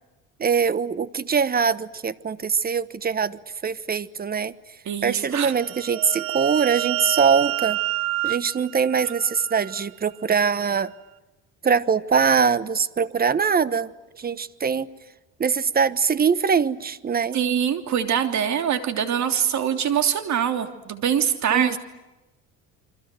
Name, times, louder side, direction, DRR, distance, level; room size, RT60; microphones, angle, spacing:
voice 1, 0.4-4.5 5.0-7.8 8.2-10.9 11.6-13.9 14.2-14.9 15.4-17.4 21.5-21.8, right 6 dB, 25° right, 16 dB, 1.2 m, -22 dB
voice 2, 4.8-5.5 17.3-21.8, right 8 dB, 55° right, 8 dB, 3.2 m, -24 dB
sound 1, 5.4-9.9, right 18 dB, 90° right, 1.2 m, -29 dB
29.0 x 25.0 x 7.8 m, 1.1 s
cardioid pair, 115°, 34 cm